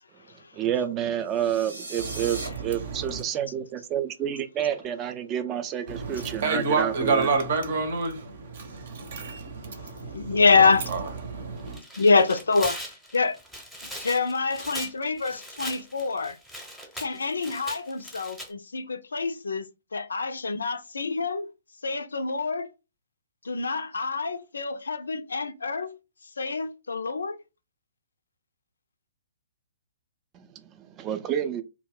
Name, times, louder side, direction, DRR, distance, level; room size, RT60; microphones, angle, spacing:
voice 1, 0.5-7.3 30.3-31.6, right 10 dB, 25° right, 0.4 m, -29 dB
sound 1, 1.3-2.5, right 2 dB, 85° right, 1.1 m, -38 dB
voice 2, 2.0-3.2 5.9-11.8, right 4 dB, 55° right, 0.8 m, -29 dB
voice 3, 9.7-10.9 12.0-12.8 13.1-13.3 14.0-16.4 17.0-21.5 21.8-22.7 23.4-26.0 26.4-27.4, left 4 dB, 80° left, 0.4 m, -26 dB
Tearing, 11.6-18.5, equal, 5° right, 0.8 m, -40 dB
2.3 x 2.1 x 3.6 m
figure-of-eight pair, 125°, 0 cm